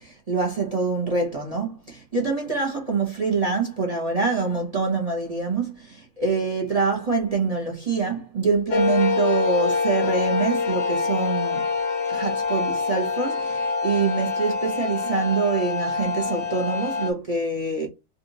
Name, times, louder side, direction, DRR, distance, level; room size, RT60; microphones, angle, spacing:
voice 1, 0.0-11.6 12.1-17.9, right 4 dB, 25° right, 0.8 m, -25 dB
sound 1, 8.7-17.1, left 5 dB, 75° left, 1.4 m, -25 dB
4.0 x 2.6 x 3.9 m
omnidirectional pair, 1.9 m